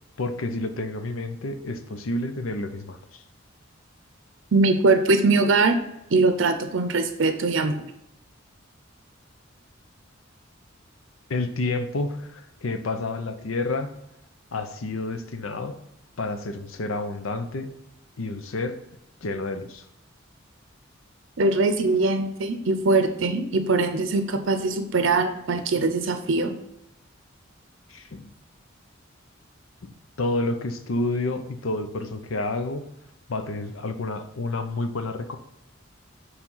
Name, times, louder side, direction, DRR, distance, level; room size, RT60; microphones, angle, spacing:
voice 1, 0.2-3.2 11.3-13.9 14.5-15.7 16.2-17.7 18.2-18.8 19.2-19.8 27.9-28.3 29.8-29.9 30.2-32.9 33.3-35.4, left 2 dB, 85° left, 8 dB, 0.7 m, -29 dB
voice 2, 4.5-5.8 6.1-7.8 21.4-26.5, right 3 dB, 70° right, 7 dB, 0.6 m, -22 dB
7.2 x 3.3 x 5.4 m, 0.83 s
head